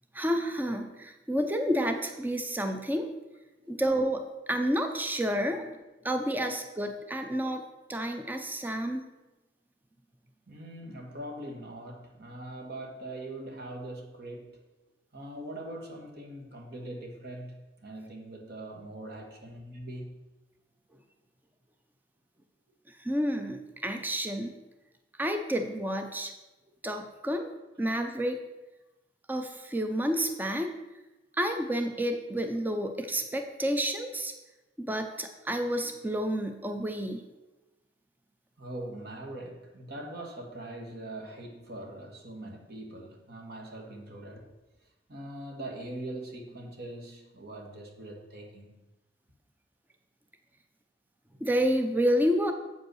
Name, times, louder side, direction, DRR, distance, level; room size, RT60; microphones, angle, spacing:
voice 1, 0.1-3.1 3.7-4.2 4.5-5.7 6.0-7.6 7.9-9.0 23.0-24.6 25.2-26.3 26.8-27.5 27.8-28.4 29.3-30.7 31.4-34.3 34.8-37.2 51.4-52.5, equal, 10° right, 5 dB, 0.6 m, -29 dB
voice 2, 10.5-14.6 15.1-20.1 38.6-44.4 45.1-48.8, right 1 dB, 60° right, 1 dB, 1.7 m, -42 dB
7.8 x 5.4 x 6.3 m, 1.1 s
head